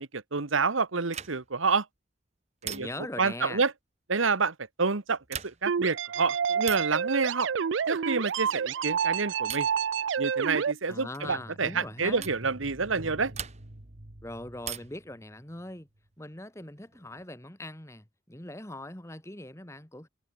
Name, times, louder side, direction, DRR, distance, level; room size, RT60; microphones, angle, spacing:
voice 1, 0.0-1.8 2.6-2.9 3.2-3.7 4.1-7.5 7.9-9.7 10.2-13.3, right 4 dB, 85° right, 1.3 m, -28 dB
sound 1, 1.1-1.6 2.6-3.2 5.2-5.8 6.6-7.0 8.2-8.6 9.5-9.8 11.1-11.4 12.2-12.4 13.3-13.9 14.6-15.1 16.6-17.2, right 9 dB, 35° right, 2.0 m, -41 dB
voice 2, 2.6-3.6 10.9-12.3 14.2-15.9 16.2-20.1, left 1 dB, 15° left, 1.6 m, -41 dB
sound 2, 5.7-10.7, right 7 dB, 70° right, 0.4 m, -29 dB
sound 3, 11.3-15.7 16.0-16.1, right 1 dB, 50° right, 1.9 m, -47 dB
head